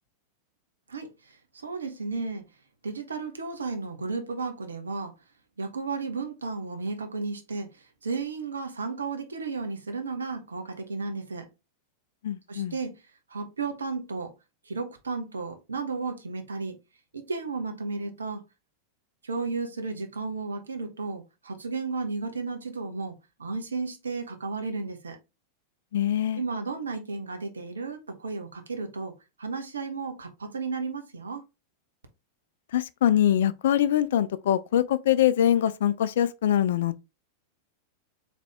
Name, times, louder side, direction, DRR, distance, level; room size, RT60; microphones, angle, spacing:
voice 1, 0.9-1.4 1.6-2.5 2.8-5.1 5.6-11.5 12.5-13.0 13.3-14.3 14.7-16.8 17.1-18.4 19.2-25.2 26.4-31.4, right 4 dB, 70° right, 0.8 m, -33 dB
voice 2, 12.2-12.7 25.9-26.4 32.7-36.9, left 10 dB, 60° left, 0.3 m, -23 dB
4.0 x 3.3 x 3.3 m
figure-of-eight pair, 90°, 0 cm